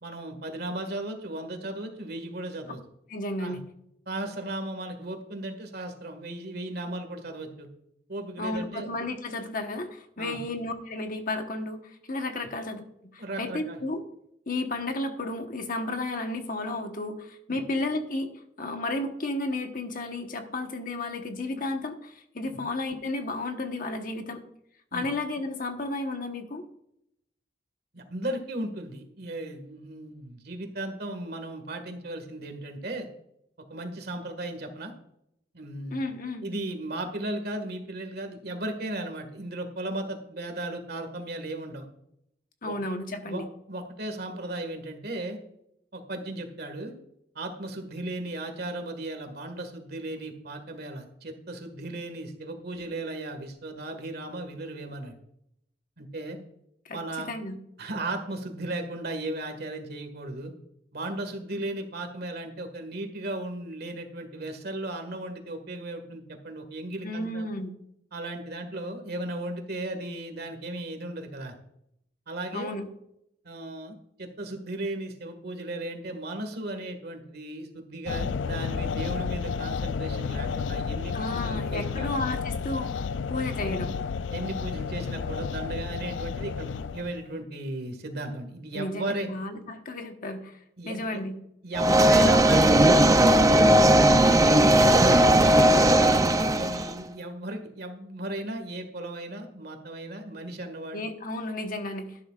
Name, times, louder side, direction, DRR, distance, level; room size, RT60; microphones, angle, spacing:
voice 1, 0.0-2.8 3.4-3.6 4.1-7.7 8.1-8.9 10.2-10.4 13.2-13.8 17.5-17.6 22.5-22.6 24.9-25.1 27.9-33.1 33.7-34.9 35.5-36.0 36.4-41.9 42.6-42.9 43.2-45.4 45.9-46.9 47.4-55.1 56.0-56.4 56.9-57.3 57.8-60.5 60.9-67.5 68.1-71.5 72.3-72.7 73.4-82.1 83.6-83.7 84.3-89.3 90.8-91.2 91.6-101.0, right 1 dB, 60° right, 6 dB, 1.8 m, -36 dB
voice 2, 3.1-3.6 8.4-14.0 14.5-18.3 18.6-24.4 24.9-26.6 35.9-36.5 42.6-43.5 56.8-57.0 57.3-57.6 67.0-67.8 72.5-72.9 81.1-83.0 83.3-84.0 88.7-90.6 90.8-91.4 100.9-102.2, left 2 dB, 50° left, 5 dB, 1.2 m, -33 dB
sound 1, 78.1-87.3, left 5 dB, 80° left, 0.4 m, -31 dB
sound 2, 91.7-96.9, right 1 dB, 20° right, 0.5 m, -18 dB
12.5 x 11.0 x 2.4 m, 0.77 s
head